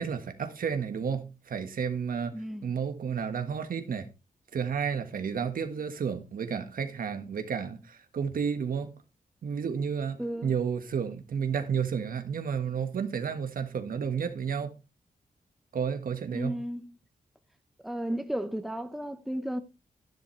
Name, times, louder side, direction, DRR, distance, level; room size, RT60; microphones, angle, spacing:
voice 1, 0.0-4.1 4.5-8.9 9.4-14.7 15.7-16.6, right 7 dB, 75° right, 1.5 m, -31 dB
voice 2, 2.3-2.6 10.2-10.5 16.3-16.8 17.8-19.6, equal, ahead, 1.0 m, -33 dB
11.0 x 10.5 x 3.2 m
wide cardioid pair, 90°, 15 cm